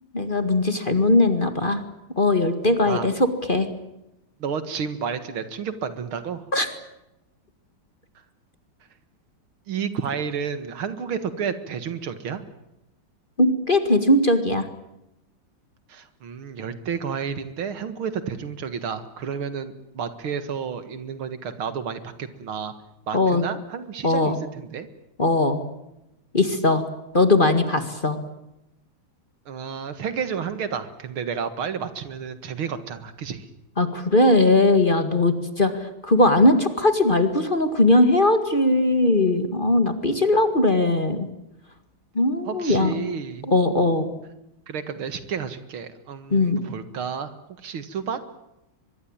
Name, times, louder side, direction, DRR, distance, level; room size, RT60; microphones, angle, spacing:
voice 1, 0.1-1.8 2.2-3.7 6.5-6.7 13.4-14.7 23.1-23.4 24.0-24.4 25.2-25.6 26.3-26.8 27.1-28.2 33.8-41.3 42.2-42.9 43.4-44.1 46.3-46.6, left 2 dB, 25° left, 9 dB, 2.0 m, -19 dB
voice 2, 4.4-6.4 9.7-12.4 15.9-22.7 23.1-24.9 29.5-33.5 42.5-43.5 44.7-47.3 47.6-48.2, right 6 dB, 75° right, 11 dB, 2.6 m, -31 dB
24.0 x 22.0 x 8.9 m, 0.89 s
omnidirectional pair, 2.3 m